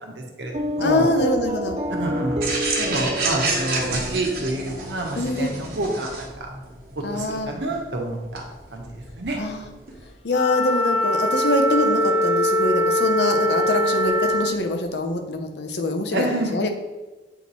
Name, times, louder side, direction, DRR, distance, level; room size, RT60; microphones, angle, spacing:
voice 1, 0.0-1.1 2.0-6.5 6.9-8.4 8.7-8.8 9.2-9.4 16.1-16.5, right 1 dB, 80° right, 1 dB, 1.1 m, -28 dB
sound 1, 0.5-5.9, equal, 35° right, 0.4 m, -29 dB
voice 2, 0.8-1.8 5.2-5.5 7.0-7.6 9.4-9.7 10.2-16.7, left 2 dB, 75° left, 5 dB, 0.8 m, -24 dB
sound 2, 2.4-10.1, right 3 dB, 55° right, 1.2 m, -30 dB
Wind instrument woodwind instrument, 10.3-14.6, equal, 35° left, 0.4 m, -22 dB
8.0 x 3.0 x 4.1 m, 1.1 s
head